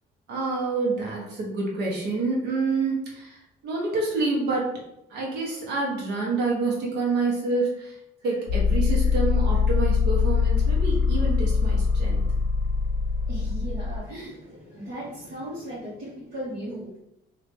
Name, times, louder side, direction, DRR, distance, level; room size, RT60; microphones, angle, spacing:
voice 1, 0.3-4.8 5.1-12.2, right 3 dB, 80° right, -2 dB, 1.2 m, -28 dB
sound 1, 8.5-14.0, left 5 dB, 65° left, 0.5 m, -23 dB
voice 2, 13.2-17.0, right 1 dB, 60° right, -9 dB, 1.5 m, -37 dB
3.2 x 2.8 x 3.4 m, 0.82 s
cardioid pair, 110°, 17 cm